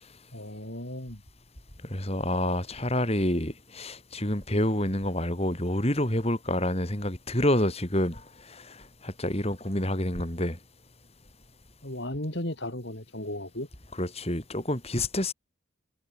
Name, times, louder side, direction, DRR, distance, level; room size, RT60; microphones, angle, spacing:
voice 1, 0.3-1.2 11.8-13.7, left 1 dB, 55° left, 4.5 m, -35 dB
voice 2, 1.8-10.6 14.0-15.3, left 1 dB, 30° left, 6.1 m, -28 dB
head